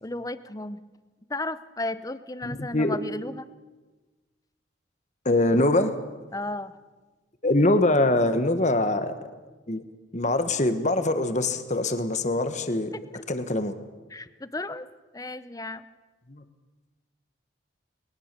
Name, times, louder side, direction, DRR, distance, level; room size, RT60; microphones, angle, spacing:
voice 1, 0.0-0.8 1.3-3.5 6.3-6.7 13.1-13.2 14.1-14.9 15.1-15.8, left 2 dB, 15° left, 14 dB, 0.7 m, -34 dB
voice 2, 2.4-3.0 5.2-5.9 7.4-9.1 9.7-9.8 10.1-12.9 13.3-13.7 16.3-16.4, left 2 dB, 35° left, 9 dB, 1.3 m, -23 dB
21.5 x 19.5 x 6.8 m, 1.3 s
head